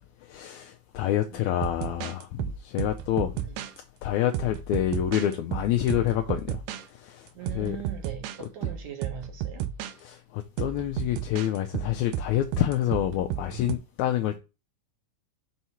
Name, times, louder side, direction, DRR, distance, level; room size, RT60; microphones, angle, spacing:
voice 1, 0.2-3.4 4.0-6.6 6.9-7.3 7.5-7.8 8.4-8.5 10.0-14.4, left 12 dB, 80° left, 1.8 m, -27 dB
sound 1, 1.5-3.8 4.3-6.8 7.5-8.4 8.6-9.9 10.6-13.8, right 11 dB, 85° right, 2.0 m, -33 dB
voice 2, 7.3-9.7 14.3-14.4, right 8 dB, 65° right, 2.5 m, -40 dB
6.4 x 3.0 x 5.5 m
omnidirectional pair, 3.6 m